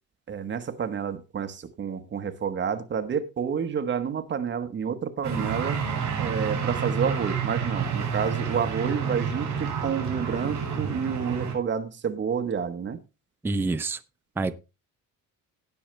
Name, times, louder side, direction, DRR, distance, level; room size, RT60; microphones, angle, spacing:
voice 1, 0.3-5.8 6.2-13.0, right 7 dB, 35° right, 1.1 m, -29 dB
sound 1, 5.2-11.5, right 6 dB, 60° right, 6.6 m, -29 dB
voice 2, 13.4-14.0 14.4-14.5, right 3 dB, 5° right, 0.4 m, -27 dB
18.0 x 6.4 x 3.2 m
cardioid pair, 165°, 33 cm